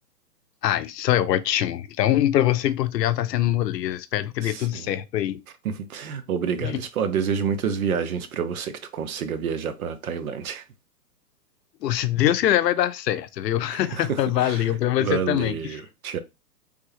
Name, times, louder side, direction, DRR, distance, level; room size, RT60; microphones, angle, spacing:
voice 1, 0.6-5.4 11.8-15.5, left 12 dB, 85° left, 0.6 m, -23 dB
voice 2, 4.4-4.9 5.6-10.7 13.7-16.2, right 7 dB, 60° right, 0.6 m, -29 dB
3.4 x 2.3 x 3.1 m
hypercardioid pair, 165°, 48 cm